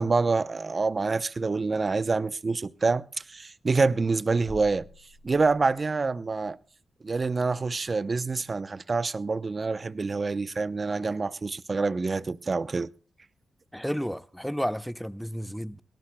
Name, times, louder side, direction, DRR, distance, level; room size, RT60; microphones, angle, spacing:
voice 1, 0.0-3.0 3.3-4.9 5.2-6.6 7.0-12.9, right 4 dB, 45° right, 0.7 m, -26 dB
sound 1, 4.5-6.1, left 2 dB, 20° left, 2.6 m, -46 dB
voice 2, 13.7-15.8, equal, ahead, 0.6 m, -32 dB
22.0 x 18.5 x 2.2 m
supercardioid pair, 45°, 0 cm